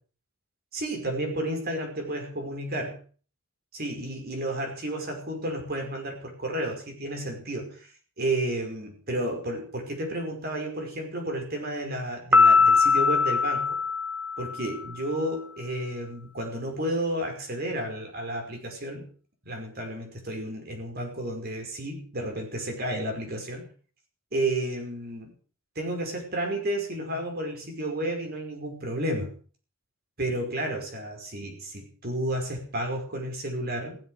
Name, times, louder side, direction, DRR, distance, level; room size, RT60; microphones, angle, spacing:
voice 1, 0.7-3.0 3.7-7.9 8.2-13.8 14.4-19.1 19.5-23.7 24.3-25.3 25.8-29.3 30.2-34.0, right 1 dB, 50° right, 3 dB, 5.3 m, -32 dB
Piano, 12.3-14.9, left 4 dB, 10° right, 2.1 m, -21 dB
16.0 x 13.5 x 6.5 m, 0.43 s
head